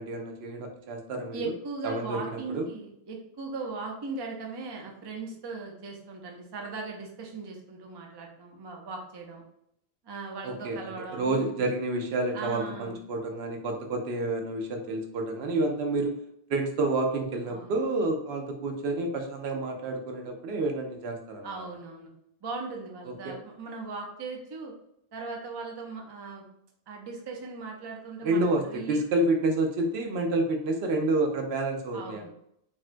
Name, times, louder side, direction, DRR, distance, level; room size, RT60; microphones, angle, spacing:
voice 1, 0.0-1.4 1.8-2.7 10.4-16.1 16.5-21.6 23.1-23.3 28.2-32.3, right 2 dB, 80° right, 3 dB, 0.8 m, -29 dB
voice 2, 1.3-9.4 10.0-11.5 12.3-13.0 17.5-17.8 21.4-22.1 22.4-24.7 25.1-26.5 26.9-29.0 31.9-32.3, right 4 dB, 40° right, 1 dB, 0.4 m, -38 dB
3.6 x 2.1 x 2.4 m, 0.76 s
omnidirectional pair, 1.0 m